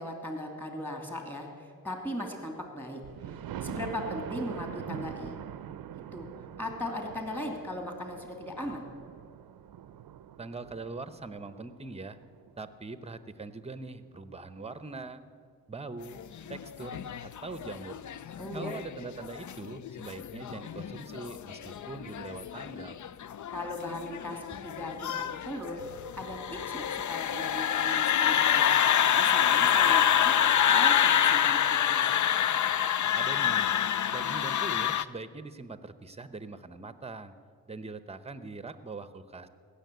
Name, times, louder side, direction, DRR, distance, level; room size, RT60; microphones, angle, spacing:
voice 1, 0.0-1.5 1.8-3.0 3.6-5.4 6.1-6.3 6.6-8.9 18.4-18.7 23.5-25.8 26.2-28.7 29.2-32.1, left 1 dB, 5° left, 2 dB, 2.7 m, -38 dB
Thunder, 3.0-12.8 13.3-13.4 13.8-13.9 14.2-14.3, right 10 dB, 75° right, 0.6 m, -43 dB
voice 2, 10.4-12.2 12.6-15.2 15.7-16.2 16.5-18.0 18.5-23.0 33.1-33.7 34.1-37.3 37.7-39.5, right 3 dB, 15° right, 12 dB, 0.8 m, -42 dB
sound 1, 16.2-35.0, left 9 dB, 55° left, 0.5 m, -27 dB
16.5 x 6.9 x 9.2 m, 2.1 s
cardioid pair, 75°, 35 cm